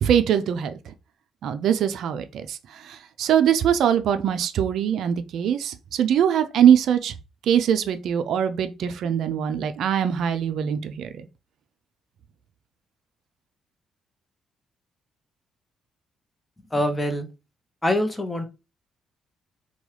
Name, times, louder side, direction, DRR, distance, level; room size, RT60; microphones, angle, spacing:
voice 1, 0.0-0.9 1.4-7.2 7.5-11.3, right 9 dB, 75° right, 0.4 m, -22 dB
voice 2, 16.7-17.3 17.8-18.4, left 1 dB, 10° left, 0.7 m, -24 dB
3.0 x 2.2 x 3.0 m
cardioid pair, 90°, 0 cm